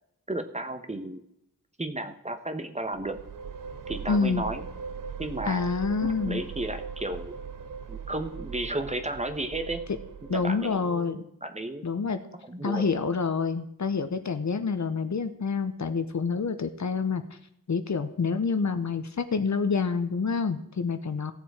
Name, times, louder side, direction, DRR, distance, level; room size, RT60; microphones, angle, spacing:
voice 1, 0.3-1.2 1.8-3.2 3.9-4.6 5.2-5.7 6.0-7.3 7.9-9.8 10.3-11.8 12.5-12.9, right 1 dB, 20° right, 8 dB, 1.1 m, -33 dB
sound 1, 2.9-10.8, right 6 dB, 65° right, 0.9 m, -40 dB
voice 2, 4.1-4.5 5.5-6.4 10.3-11.2 11.8-12.2 12.6-17.2 17.7-21.3, left 5 dB, 55° left, 9 dB, 1.0 m, -27 dB
16.0 x 7.2 x 4.9 m, 0.78 s
wide cardioid pair, 85°, 35 cm